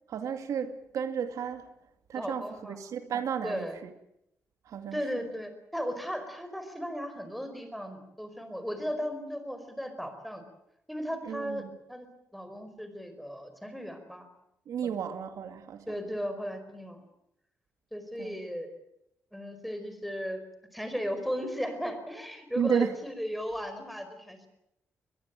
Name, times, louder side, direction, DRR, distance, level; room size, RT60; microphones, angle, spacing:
voice 1, 0.1-1.7 2.1-3.7 4.7-5.3 11.2-11.8 14.7-16.0 18.2-18.4 22.6-22.9, right 8 dB, 75° right, 7 dB, 2.3 m, -33 dB
voice 2, 2.1-2.8 3.4-3.8 4.9-10.4 10.9-12.1 12.3-14.3 14.8-14.9 15.9-17.0 17.9-18.7 19.3-20.4 20.7-24.5, equal, ahead, 8 dB, 4.8 m, -36 dB
22.5 x 21.5 x 9.0 m, 0.82 s
cardioid pair, 125°, 6 cm